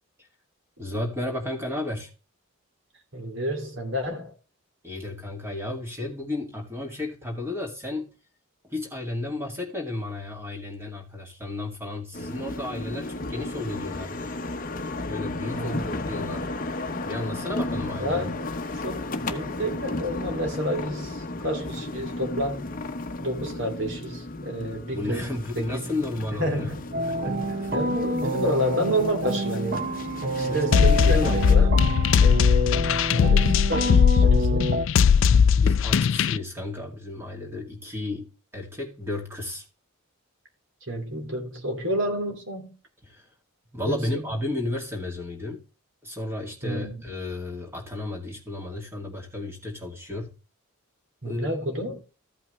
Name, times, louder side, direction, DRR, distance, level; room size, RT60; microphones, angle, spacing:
voice 1, 0.8-2.1 4.8-8.2 8.6-14.2 15.0-16.5 17.0-18.2 24.9-26.7 27.7-27.9 30.4-31.8 35.6-39.6 43.0-43.2 43.7-45.6 46.0-50.3 51.2-51.6, left 2 dB, 10° right, 2.2 m, -33 dB
voice 2, 3.1-4.3 15.5-16.1 17.9-18.5 18.7-22.7 23.2-25.9 26.4-26.9 27.3-29.9 30.3-31.7 33.1-34.8 40.9-42.8 43.9-44.3 46.6-47.0 51.2-52.0, equal, 60° right, 2.7 m, -30 dB
sound 1, 12.1-31.6, left 2 dB, 40° left, 0.8 m, -34 dB
sound 2, 26.9-34.9, right 1 dB, 45° right, 0.8 m, -28 dB
sound 3, 30.7-36.4, left 6 dB, 60° left, 0.3 m, -19 dB
14.5 x 5.6 x 3.2 m
head